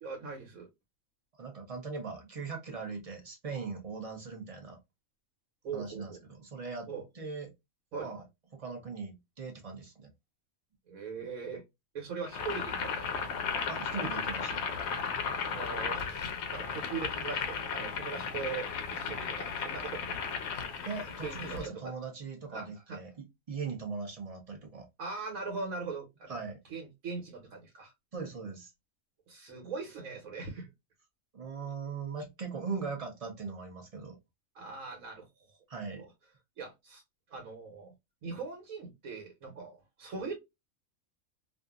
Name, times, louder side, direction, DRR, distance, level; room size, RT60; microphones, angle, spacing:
voice 1, 0.0-0.7 5.6-6.2 6.9-7.0 7.9-8.1 10.9-11.6 11.9-13.3 15.5-20.4 21.2-21.9 22.5-23.0 25.0-26.4 26.7-27.9 29.3-30.7 34.5-35.2 36.0-36.1 36.6-37.0 37.3-37.9 38.2-40.3, right 4 dB, 75° right, 1.3 m, -40 dB
voice 2, 1.4-4.8 5.7-6.9 7.1-7.5 8.0-8.2 8.5-10.1 13.7-14.6 20.9-24.9 26.3-26.6 28.1-28.7 31.3-34.2 35.7-36.1, right 5 dB, 40° right, 0.5 m, -40 dB
Boiling, 12.2-21.7, left 6 dB, 65° left, 0.7 m, -35 dB
2.6 x 2.4 x 2.3 m
omnidirectional pair, 1.5 m